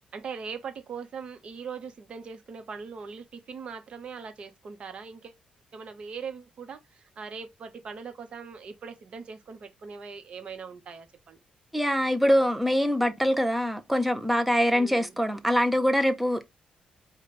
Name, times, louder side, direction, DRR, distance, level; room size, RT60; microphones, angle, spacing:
voice 1, 0.0-5.3 5.7-11.4 14.7-15.2, right 5 dB, 40° right, 0.8 m, -41 dB
voice 2, 11.7-16.4, equal, 5° right, 0.5 m, -24 dB
4.9 x 2.2 x 3.8 m
cardioid pair, 155°, 3 cm